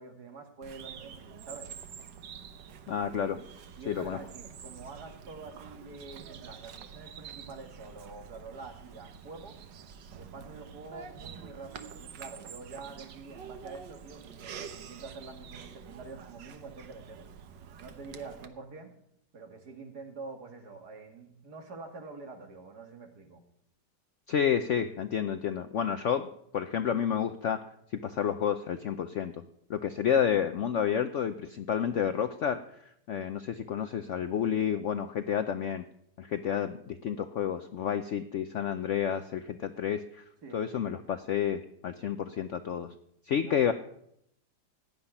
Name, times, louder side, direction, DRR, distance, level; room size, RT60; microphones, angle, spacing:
voice 1, 0.0-1.7 3.8-9.6 10.2-17.3 17.8-18.9 19.3-23.4 40.4-40.9 43.4-43.7, right 4 dB, 60° right, 5 dB, 2.2 m, -46 dB
Bird vocalization bird call bird song, 0.6-18.5, right 7 dB, 80° right, 1.7 m, -47 dB
voice 2, 2.9-3.4 3.9-4.2 24.3-27.7 27.9-29.4 29.7-32.6 33.1-35.8 36.2-40.2 40.5-42.9 43.3-43.7, left 8 dB, 65° left, 10 dB, 0.7 m, -30 dB
15.5 x 5.8 x 10.0 m, 0.73 s
omnidirectional pair, 1.9 m